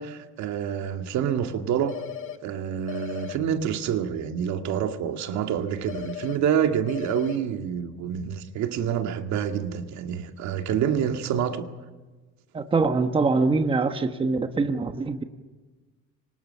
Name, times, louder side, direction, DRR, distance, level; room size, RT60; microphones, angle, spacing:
voice 1, 0.0-2.0 2.4-11.7, right 8 dB, 70° right, 2.1 m, -27 dB
sound 1, 1.9-2.4 2.9-3.4 5.9-6.4 6.9-7.4, left 10 dB, 45° left, 1.4 m, -36 dB
voice 2, 12.5-15.2, right 4 dB, 20° right, 1.1 m, -24 dB
28.0 x 25.0 x 5.7 m
cardioid pair, 165°, 29 cm